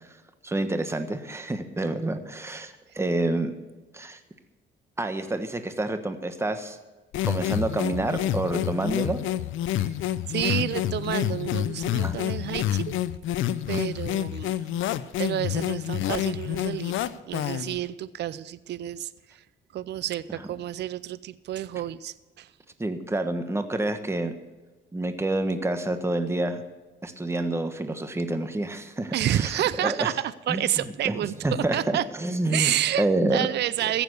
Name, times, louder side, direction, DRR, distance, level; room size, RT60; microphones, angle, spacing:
voice 1, 0.4-3.5 3.9-4.2 5.0-6.8 7.2-9.2 12.0-12.2 22.8-24.3 24.9-26.6 27.0-30.1 30.5-30.6 31.0-32.7 33.0-33.5, right 2 dB, 15° right, 8 dB, 1.3 m, -28 dB
sound 1, 7.1-17.8, left 12 dB, 80° left, 0.6 m, -28 dB
voice 2, 10.3-12.9 13.7-14.7 15.2-17.0 17.3-19.4 19.7-22.5 29.1-32.0 32.5-34.0, right 12 dB, 60° right, 17 dB, 0.5 m, -29 dB
15.0 x 7.0 x 8.1 m, 1.2 s
cardioid pair, 90°, 20 cm